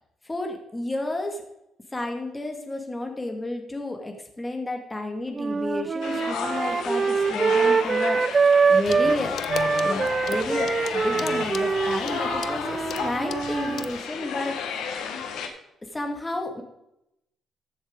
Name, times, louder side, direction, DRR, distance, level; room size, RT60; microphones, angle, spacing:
voice 1, 0.2-1.4 1.9-9.4 9.8-15.0 15.9-16.6, left 1 dB, 15° left, 3 dB, 1.9 m, -32 dB
sound 1, 5.3-9.2 9.5-13.9, right 5 dB, 35° right, 0.4 m, -24 dB
sound 2, 6.0-15.5, left 7 dB, 90° left, 1.4 m, -33 dB
Clock, 8.9-14.0, left 9 dB, 65° left, 0.5 m, -38 dB
14.0 x 7.3 x 3.8 m, 0.83 s
cardioid pair, 90°, 0 cm